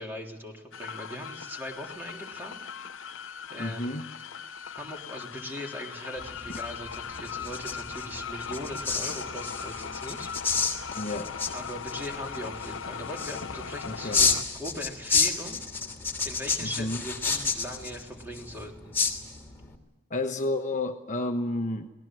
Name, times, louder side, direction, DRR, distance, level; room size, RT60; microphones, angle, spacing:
voice 1, 0.0-2.6 3.5-3.9 4.8-10.3 11.5-15.6 16.2-19.0, equal, 10° right, 0 dB, 3.5 m, -40 dB
sound 1, 0.7-14.4, left 6 dB, 75° left, 0.8 m, -39 dB
voice 2, 3.6-4.1 10.9-11.3 13.8-14.3 16.6-17.0 20.1-21.9, left 2 dB, 40° left, 5 dB, 1.2 m, -31 dB
sound 2, 6.2-19.7, left 5 dB, 10° left, 2.9 m, -31 dB
26.5 x 19.0 x 7.7 m, 1.1 s
head